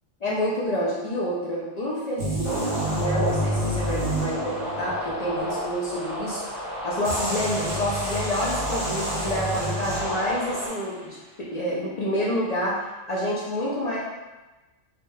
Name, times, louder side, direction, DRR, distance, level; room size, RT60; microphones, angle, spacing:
voice 1, 0.2-12.8 13.1-14.0, equal, 70° left, -6 dB, 0.3 m, -28 dB
sound 1, 2.2-5.0 7.0-10.5, right 1 dB, 65° right, 1.3 m, -29 dB
sound 2, 2.4-10.7, equal, 20° right, 1.3 m, -32 dB
3.3 x 2.2 x 2.6 m, 1.1 s
omnidirectional pair, 1.3 m